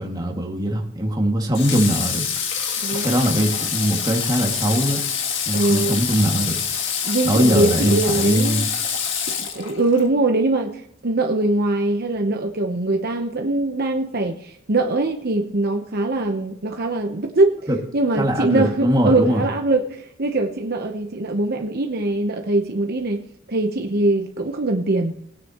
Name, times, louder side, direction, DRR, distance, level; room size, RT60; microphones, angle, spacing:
voice 1, 0.0-2.6 2.9-5.0 5.5-6.6 7.2-8.7 17.7-17.8 18.2-19.4, equal, 20° right, 0 dB, 2.2 m, -21 dB
Water / Water tap faucet, 1.5-10.1, left 7 dB, 60° left, 1.7 m, -26 dB
voice 2, 2.8-3.2 5.5-6.0 7.0-8.6 9.4-17.6 17.9-25.2, right 2 dB, 50° right, 3 dB, 1.0 m, -22 dB
19.5 x 9.9 x 3.0 m, 0.72 s
head